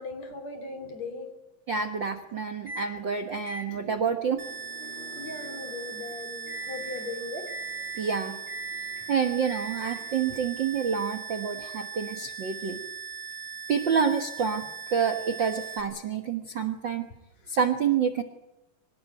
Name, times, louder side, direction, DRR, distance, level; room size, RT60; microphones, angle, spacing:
voice 1, 0.0-1.4 5.2-7.5 10.3-10.4, left 3 dB, 45° left, 8 dB, 4.2 m, -38 dB
voice 2, 1.7-4.4 8.0-8.4 9.1-12.8 13.7-14.6 14.9-17.1 17.5-18.2, right 6 dB, 80° right, 7 dB, 1.0 m, -28 dB
Microwave oven, 2.7-2.9 3.5-10.3, right 2 dB, 10° left, 4.2 m, -42 dB
sound 1, 4.4-15.8, right 7 dB, 55° right, 5.3 m, -39 dB
25.0 x 20.0 x 9.1 m, 0.94 s
omnidirectional pair, 4.4 m